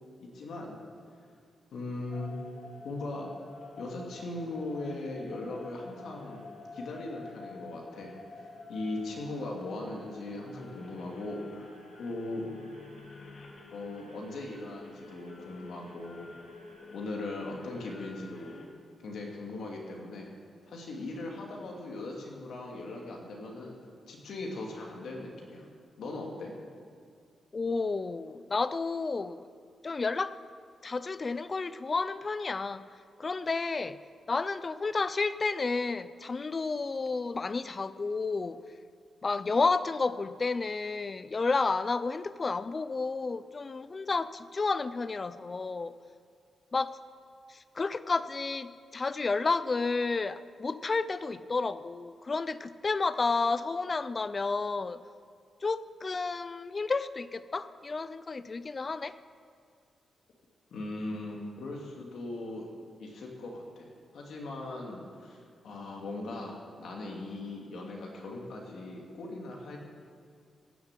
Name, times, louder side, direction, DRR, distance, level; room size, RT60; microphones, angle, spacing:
voice 1, 0.2-0.8 1.7-2.4 2.8-3.3 3.8-11.7 12.0-12.5 13.7-16.3 16.9-18.6 19.0-20.3 20.7-23.7 24.1-25.7 26.0-26.5 60.7-62.7 63.0-63.9 64.1-69.8, left 2 dB, 75° left, -1 dB, 2.5 m, -39 dB
sound 1, 2.1-18.7, left 3 dB, 55° left, 1.8 m, -49 dB
voice 2, 27.5-29.5 29.8-30.4 30.8-32.8 33.2-34.0 34.3-38.6 39.2-45.9 46.7-47.0 47.5-55.0 55.6-59.1, left 4 dB, 30° left, 15 dB, 0.4 m, -31 dB
16.5 x 7.2 x 7.5 m, 2.2 s
wide cardioid pair, 150°, 0 cm